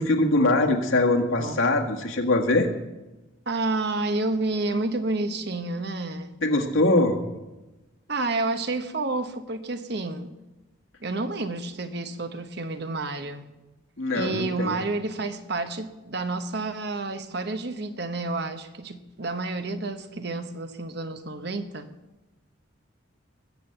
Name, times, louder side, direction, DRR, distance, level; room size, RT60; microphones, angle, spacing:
voice 1, 0.0-2.7 6.4-7.2 14.0-14.8, left 2 dB, 80° left, 1.8 m, -22 dB
voice 2, 3.5-6.3 8.1-10.3 11.0-13.5 14.1-21.9, right 2 dB, 50° right, 1.0 m, -30 dB
20.0 x 7.3 x 7.9 m
head